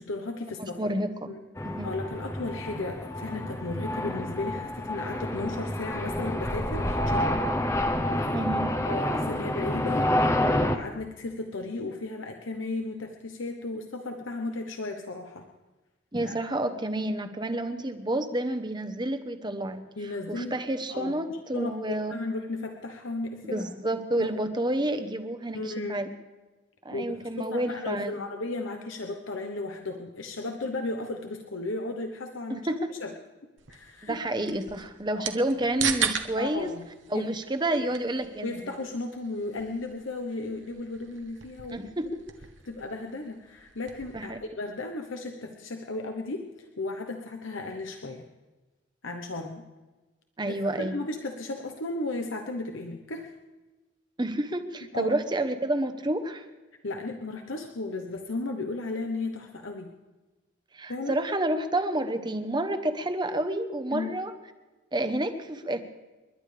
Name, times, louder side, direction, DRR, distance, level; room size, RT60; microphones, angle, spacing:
voice 1, 0.0-0.9 1.3-1.4 1.8-7.4 7.9-8.4 8.8-15.4 16.3-16.4 20.0-20.6 20.9-23.7 24.2-24.3 25.5-26.0 26.9-33.1 33.7-34.2 35.1-35.2 36.4-36.9 37.1-37.3 38.4-41.9 42.6-48.3 49.0-49.7 50.8-53.3 54.9-55.1 56.8-59.9 60.9-61.2 63.9-64.2, left 2 dB, 85° left, 4 dB, 1.1 m, -35 dB
voice 2, 0.6-1.1 1.6-1.9 8.3-8.7 16.1-19.8 20.3-22.1 23.4-26.1 26.8-28.2 32.5-32.9 34.0-36.7 37.1-38.6 41.7-42.1 44.1-44.4 50.4-51.0 54.2-56.4 60.7-64.3 64.9-65.8, right 1 dB, 20° right, 8 dB, 0.9 m, -29 dB
sound 1, 1.6-10.8, left 1 dB, 15° left, 0.8 m, -28 dB
sound 2, 33.6-44.3, right 8 dB, 75° right, 1.1 m, -38 dB
29.5 x 11.5 x 3.4 m, 1.2 s
head